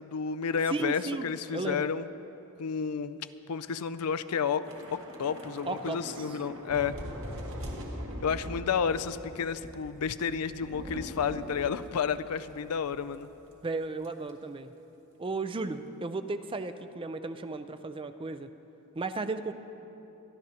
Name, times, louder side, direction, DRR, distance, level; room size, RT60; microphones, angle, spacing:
voice 1, 0.0-2.1 2.6-3.2 3.5-7.0 8.2-13.3, left 6 dB, 80° left, 13 dB, 0.5 m, -31 dB
voice 2, 0.7-1.3 1.5-1.9 5.7-6.3 13.6-14.7 15.2-18.5 18.9-19.5, right 3 dB, 25° right, 10 dB, 0.4 m, -34 dB
Thunder / Rain, 4.6-13.2 13.5-13.7 14.0-14.3, equal, 60° right, 2.0 m, -42 dB
24.5 x 12.0 x 2.9 m, 2.9 s
head